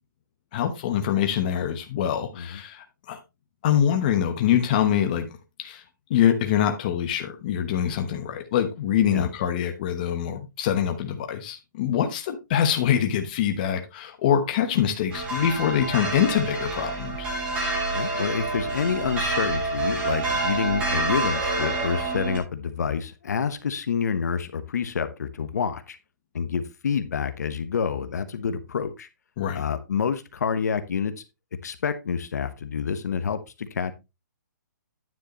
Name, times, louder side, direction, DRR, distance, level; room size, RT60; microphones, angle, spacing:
voice 1, 0.5-3.2 3.6-5.3 5.6-5.8 6.1-17.3 29.4-29.6, left 9 dB, 25° left, 5 dB, 1.0 m, -24 dB
sound 1, 15.1-22.4, right 2 dB, 10° right, 2.2 m, -27 dB
voice 2, 17.9-26.0 26.3-29.1 29.5-31.1 31.6-33.9, left 6 dB, 60° left, 10 dB, 1.0 m, -28 dB
9.5 x 7.6 x 3.0 m, 0.25 s
hypercardioid pair, 170°, 10 cm